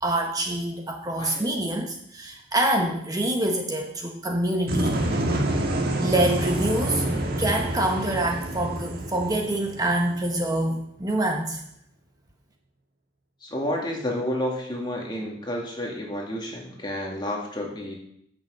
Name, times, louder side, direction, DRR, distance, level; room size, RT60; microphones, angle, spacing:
voice 1, 0.0-5.0 6.0-7.1 7.4-11.6, right 1 dB, 20° right, 2 dB, 1.0 m, -26 dB
voice 2, 1.2-1.5 13.4-18.0, left 1 dB, 20° left, -1 dB, 2.2 m, -30 dB
sound 1, 4.7-10.5, right 1 dB, 50° right, 1.6 m, -27 dB
10.5 x 6.3 x 7.5 m, 0.73 s
head